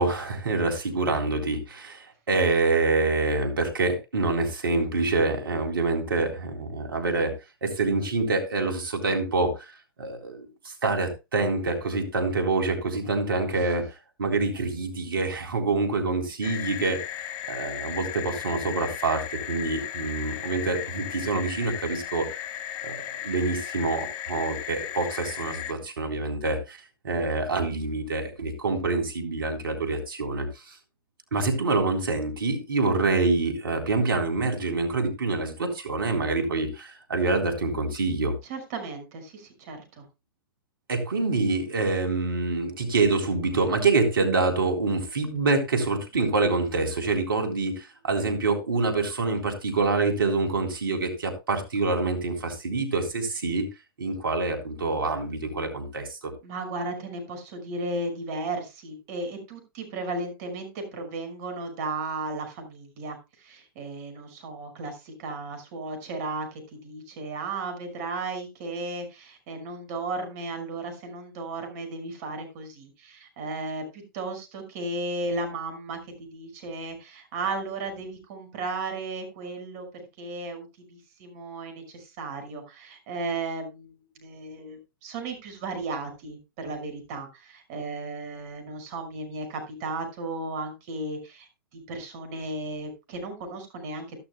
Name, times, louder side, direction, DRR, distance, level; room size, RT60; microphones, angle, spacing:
voice 1, 0.0-7.4 7.6-9.5 10.0-13.8 14.2-17.0 17.5-22.3 22.8-26.8 27.0-30.7 31.3-38.3 40.9-53.7 54.0-56.3, right 3 dB, 75° right, 5 dB, 3.8 m, -26 dB
sound 1, 16.4-25.7, left 12 dB, 40° left, 1.7 m, -36 dB
voice 2, 38.4-40.1 56.4-94.2, right 2 dB, 45° right, 6 dB, 5.8 m, -35 dB
14.5 x 12.5 x 2.3 m, 0.25 s
hypercardioid pair, 110°, 12 cm